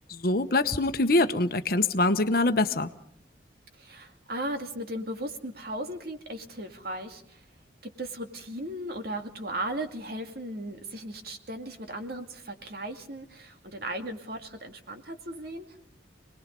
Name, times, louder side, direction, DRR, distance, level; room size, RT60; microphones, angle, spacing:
voice 1, 0.1-2.9, left 2 dB, 50° left, 10 dB, 1.1 m, -24 dB
voice 2, 3.7-7.4 8.0-15.7, right 1 dB, 55° right, 5 dB, 2.3 m, -36 dB
26.5 x 20.0 x 5.3 m, 0.67 s
head